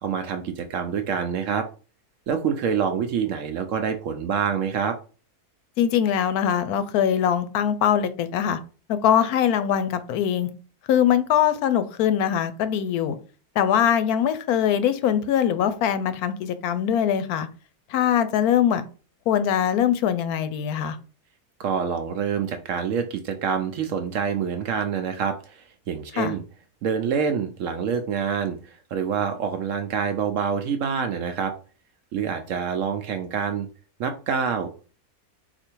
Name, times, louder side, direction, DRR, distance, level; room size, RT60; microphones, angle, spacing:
voice 1, 0.0-1.7 2.3-5.0 21.6-26.4 26.8-31.5 32.1-33.7 34.0-34.9, right 7 dB, 70° right, 7 dB, 0.8 m, -26 dB
voice 2, 5.8-8.6 8.9-10.5 10.9-13.2 13.6-17.5 17.9-18.9 19.3-21.0 26.2-26.3, left 9 dB, 75° left, 12 dB, 1.0 m, -22 dB
4.2 x 2.6 x 4.4 m, 0.36 s
omnidirectional pair, 1.6 m